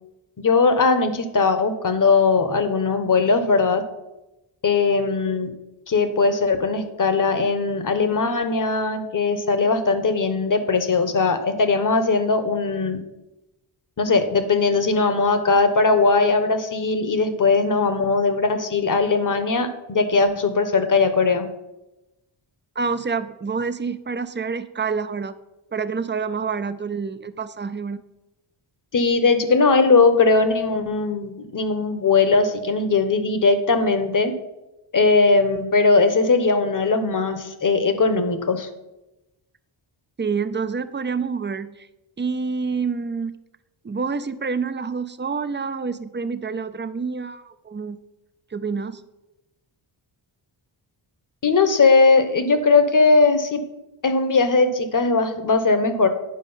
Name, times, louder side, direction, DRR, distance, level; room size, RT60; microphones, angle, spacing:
voice 1, 0.4-3.8 4.6-5.5 5.9-13.0 14.0-21.5 28.9-34.3 34.9-38.7 51.4-53.6 54.0-56.1, left 4 dB, 40° left, 9 dB, 1.0 m, -19 dB
voice 2, 22.8-25.4 25.7-28.0 40.2-41.9 42.2-43.4 43.8-48.0 48.5-49.0, right 5 dB, 25° right, 12 dB, 0.4 m, -27 dB
9.9 x 5.0 x 5.6 m, 0.98 s
wide cardioid pair, 90°, 49 cm